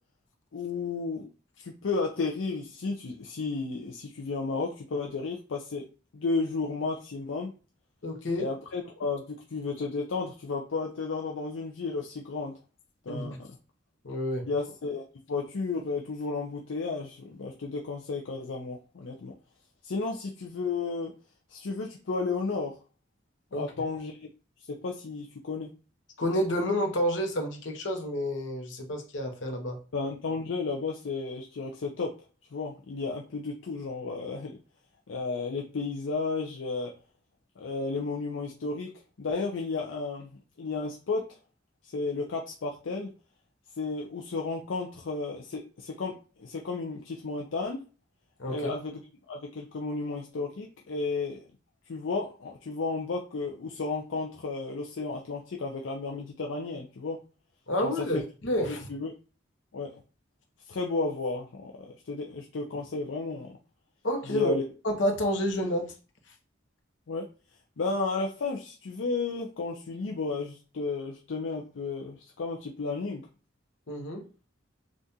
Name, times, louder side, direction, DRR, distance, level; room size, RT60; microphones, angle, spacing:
voice 1, 0.5-1.3 1.6-5.8 6.1-7.5 8.4-12.6 13.1-13.5 14.5-15.0 15.3-19.3 19.8-21.1 21.5-22.8 23.5-24.3 24.7-25.7 29.9-32.1 32.5-34.6 35.1-36.9 37.6-38.9 39.2-41.3 41.9-43.1 43.8-47.8 48.5-49.0 49.3-51.5 51.9-57.2 57.8-58.2 58.7-59.1 59.7-60.0 60.7-63.5 64.3-64.6 67.1-67.3 67.8-73.3, left 3 dB, 90° left, 0.5 m, -33 dB
voice 2, 8.0-8.5 13.1-13.4 14.0-14.5 23.5-23.7 26.2-29.8 48.4-48.7 57.7-58.9 64.0-64.5 64.8-65.9 73.9-74.2, equal, 70° left, 0.9 m, -29 dB
3.6 x 2.4 x 2.7 m
head